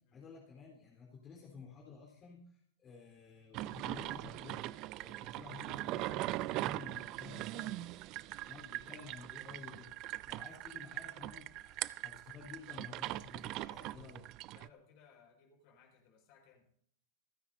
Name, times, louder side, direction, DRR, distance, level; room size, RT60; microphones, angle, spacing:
voice 1, 0.1-7.8 8.2-14.2, left 5 dB, 30° left, -1 dB, 4.0 m, -53 dB
sound 1, 3.5-14.7, right 17 dB, 45° right, 0.5 m, -41 dB
voice 2, 13.7-14.1 14.5-16.7, left 6 dB, 55° left, 2 dB, 5.5 m, -63 dB
28.5 x 9.8 x 2.8 m, 0.64 s
hypercardioid pair, 95°, 0 cm